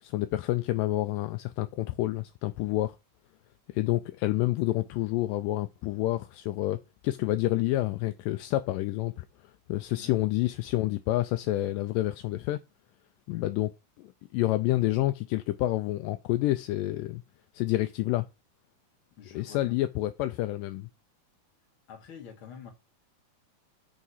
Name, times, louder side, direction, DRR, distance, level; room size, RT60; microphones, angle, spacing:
voice 1, 0.0-3.0 3.7-9.3 9.7-12.6 13.3-13.7 14.0-17.2 17.5-18.3 19.3-20.9, left 16 dB, 80° left, 2.1 m, -28 dB
voice 2, 19.2-19.8 21.9-22.7, left 7 dB, 45° left, 2.3 m, -47 dB
6.5 x 3.7 x 5.6 m
omnidirectional pair, 4.0 m